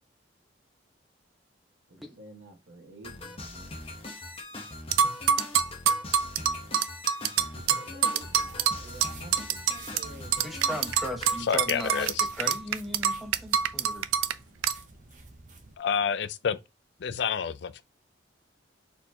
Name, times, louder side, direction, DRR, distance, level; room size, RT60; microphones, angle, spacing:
voice 1, 1.9-3.7 7.4-10.4, right 2 dB, 75° right, 1.5 m, -49 dB
sound 1, 3.0-11.4, left 2 dB, 30° left, 1.0 m, -41 dB
sound 2, 4.9-10.1 10.3-14.3 14.6-14.8, right 8 dB, 90° right, 0.4 m, -25 dB
sound 3, 8.3-15.8, right 3 dB, 40° right, 0.8 m, -49 dB
voice 2, 10.4-14.1, equal, ahead, 0.8 m, -37 dB
voice 3, 11.5-12.2 15.8-16.6 17.0-17.8, left 7 dB, 60° left, 0.4 m, -28 dB
4.3 x 4.2 x 2.8 m
head